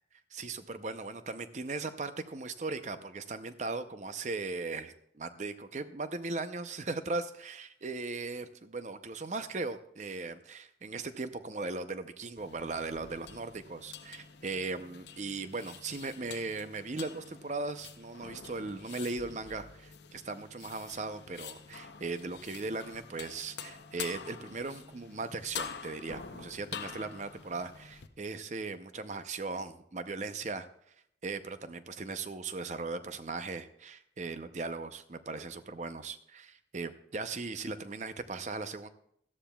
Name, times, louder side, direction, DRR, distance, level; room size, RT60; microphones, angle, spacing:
voice 1, 0.3-30.7 31.2-38.9, right 3 dB, 40° right, 11 dB, 0.6 m, -38 dB
sound 1, 12.4-28.1, left 7 dB, 70° left, 0.6 m, -47 dB
17.0 x 13.0 x 2.3 m, 0.71 s
head